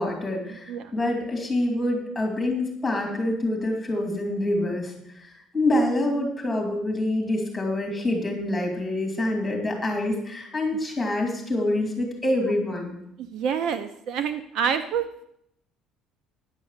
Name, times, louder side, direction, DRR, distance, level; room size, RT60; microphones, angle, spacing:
voice 1, 0.0-13.0, left 1 dB, 5° left, 1 dB, 2.6 m, -26 dB
voice 2, 13.3-15.2, right 7 dB, 50° right, 10 dB, 0.6 m, -27 dB
9.8 x 6.3 x 7.2 m, 0.74 s
cardioid pair, 170°, 0 cm